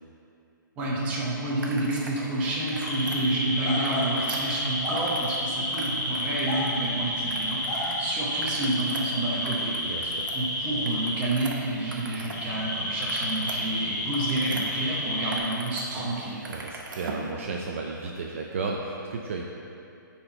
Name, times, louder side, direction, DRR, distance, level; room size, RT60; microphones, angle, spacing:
voice 1, 0.8-16.4, right 2 dB, 10° right, -5 dB, 0.8 m, -29 dB
sound 1, 1.6-2.2 2.5-3.2 3.7-5.4 5.7-6.9 7.3-8.0 8.3-12.4 12.7-14.6 15.1-15.8 16.1-17.3, right 3 dB, 70° right, 1.0 m, -41 dB
sound 2, 2.8-15.4, left 1 dB, 10° left, 1.4 m, -30 dB
voice 2, 9.8-10.3 16.5-19.4, right 4 dB, 40° right, 0 dB, 0.4 m, -33 dB
9.8 x 4.4 x 3.9 m, 2.7 s
hypercardioid pair, 175°, 11 cm